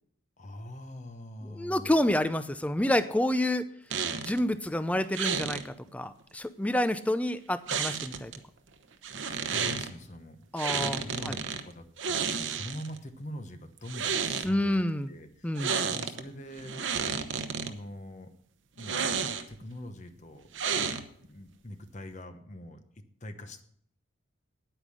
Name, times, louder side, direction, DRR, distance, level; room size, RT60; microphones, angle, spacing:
voice 1, 0.4-2.1 9.3-10.4 10.7-16.9 17.6-18.3 18.7-19.0 19.5-20.5 21.2-22.8 23.2-23.6, left 1 dB, 35° left, 8 dB, 1.0 m, -44 dB
voice 2, 1.4-3.7 4.2-8.3 10.5-11.4 14.4-15.1 15.4-15.7, left 1 dB, 5° left, 12 dB, 0.5 m, -28 dB
sound 1, 3.9-4.4 5.1-5.6 7.7-8.4 9.0-9.9 10.6-11.6 12.0-13.0 13.8-14.5 15.6-16.2 16.6-17.7 18.8-19.6 20.5-21.3, right 6 dB, 65° right, 0.9 m, -31 dB
10.0 x 8.9 x 6.4 m, 0.66 s
head